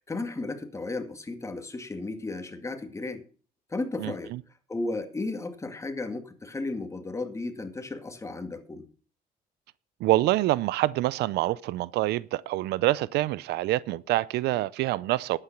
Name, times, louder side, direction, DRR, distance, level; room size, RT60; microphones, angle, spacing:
voice 1, 0.0-3.2 3.7-4.3 4.7-8.9, left 2 dB, 15° left, 2.0 m, -34 dB
voice 2, 4.0-4.4 10.0-15.4, right 16 dB, 80° right, 0.5 m, -26 dB
11.5 x 9.0 x 5.8 m
cardioid pair, 110°, 17 cm